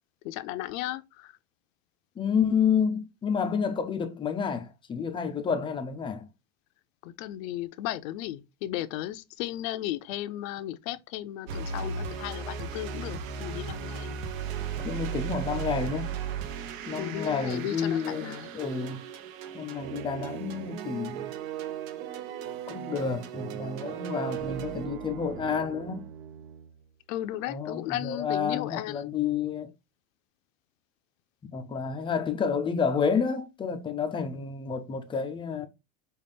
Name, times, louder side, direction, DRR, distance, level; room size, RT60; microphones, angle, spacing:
voice 1, 0.2-1.3 7.0-14.1 16.9-18.5 27.1-29.1, left 14 dB, 80° left, 0.6 m, -35 dB
voice 2, 2.2-6.3 14.8-16.1 16.9-19.0 19.5-21.3 22.7-26.1 27.5-29.7 31.4-35.7, left 6 dB, 15° left, 0.3 m, -30 dB
sound 1, 11.5-24.9, right 6 dB, 80° right, 0.9 m, -37 dB
sound 2, 19.8-26.8, right 12 dB, 65° right, 0.6 m, -38 dB
5.5 x 2.4 x 3.4 m
supercardioid pair, 145°, 39 cm